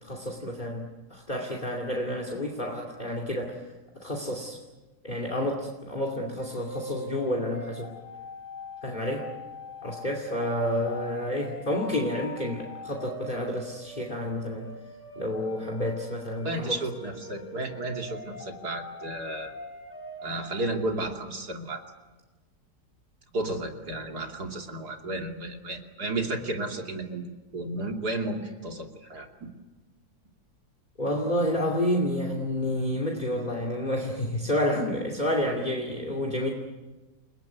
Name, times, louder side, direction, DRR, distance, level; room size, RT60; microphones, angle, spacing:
voice 1, 0.0-3.6 4.0-4.6 5.0-7.9 8.8-9.3 9.8-14.7 15.1-16.7 31.0-36.5, left 1 dB, 25° left, 1 dB, 2.8 m, -29 dB
sound 1, 6.4-20.8, left 1 dB, 5° right, 7.6 m, -43 dB
voice 2, 16.4-19.5 20.2-21.8 23.3-27.2 27.5-29.3, right 2 dB, 70° right, 3 dB, 3.4 m, -33 dB
30.0 x 20.0 x 9.5 m, 1.2 s
omnidirectional pair, 1.8 m